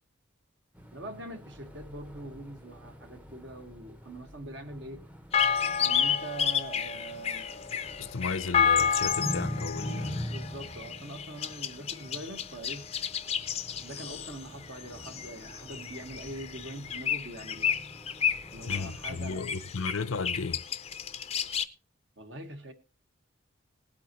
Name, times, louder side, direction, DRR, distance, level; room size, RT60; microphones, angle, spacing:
sound 1, 0.8-19.3, equal, 5° right, 0.7 m, -44 dB
voice 1, 0.9-5.0 5.8-7.5 9.9-12.9 13.8-17.8 18.5-19.5 22.2-22.7, right 1 dB, 60° right, 1.6 m, -43 dB
sound 2, 5.3-21.6, left 7 dB, 30° left, 0.5 m, -31 dB
voice 2, 8.0-10.3 18.6-20.6, left 4 dB, 85° left, 0.7 m, -34 dB
19.0 x 8.3 x 3.0 m
head